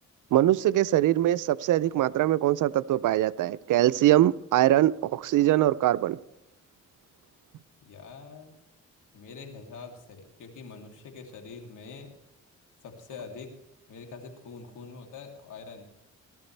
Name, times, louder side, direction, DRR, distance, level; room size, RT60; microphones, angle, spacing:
voice 1, 0.3-6.2, right 14 dB, 80° right, 17 dB, 0.6 m, -22 dB
voice 2, 7.6-8.5 9.1-12.1 12.8-13.5 13.9-15.9, left 5 dB, 80° left, 3 dB, 2.9 m, -44 dB
19.0 x 12.5 x 3.3 m, 0.89 s
cardioid pair, 80°, 31 cm